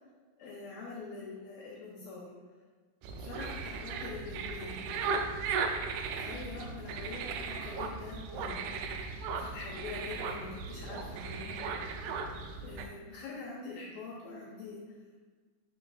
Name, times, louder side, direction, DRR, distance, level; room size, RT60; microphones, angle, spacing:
voice 1, 0.4-2.3 3.2-4.8 6.2-9.0 9.3-11.9 12.6-14.8, left 4 dB, 75° left, -5 dB, 2.3 m, -44 dB
sound 1, 3.0-12.9, right 5 dB, 90° right, 2.1 m, -37 dB
8.9 x 5.4 x 2.4 m, 1.4 s
omnidirectional pair, 4.9 m